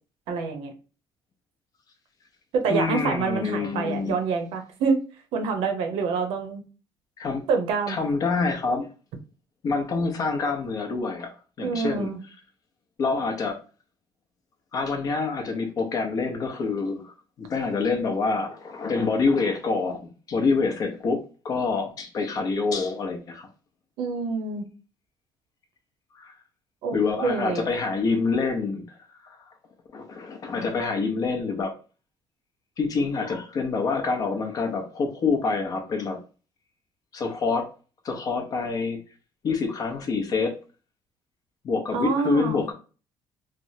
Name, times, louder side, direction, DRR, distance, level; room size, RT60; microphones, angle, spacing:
voice 1, 0.3-0.7 2.5-5.0 5.3-6.6 7.5-8.0 11.6-12.2 24.0-24.7 26.8-27.7 41.9-42.6, right 5 dB, 85° right, 5 dB, 0.7 m, -26 dB
voice 2, 2.7-4.2 7.2-7.4 7.9-8.9 9.6-12.1 13.0-13.6 14.7-23.5 26.1-26.3 26.9-28.8 29.2-29.4 29.9-31.7 32.8-36.2 37.1-37.7 38.0-39.0 39.4-40.6 41.6-42.7, left 4 dB, 45° left, 4 dB, 0.7 m, -26 dB
3.3 x 2.0 x 2.6 m, 0.35 s
cardioid pair, 140°, 9 cm